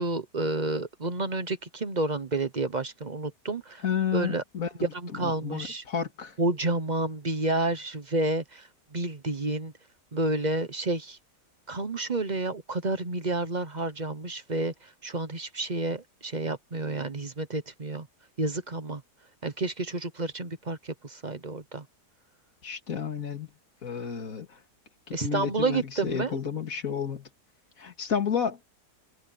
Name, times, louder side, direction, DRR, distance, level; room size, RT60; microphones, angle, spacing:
voice 1, 0.0-3.8 4.1-4.4 4.9-5.8 6.4-9.7 10.1-11.2 11.7-18.1 18.4-19.0 19.4-21.9 25.1-26.4, right 2 dB, 30° right, 1.0 m, -30 dB
voice 2, 3.8-4.9 5.2-6.4 22.6-23.5 23.8-24.6 25.1-27.3 27.8-28.6, left 7 dB, 55° left, 2.8 m, -31 dB
omnidirectional pair, 1.8 m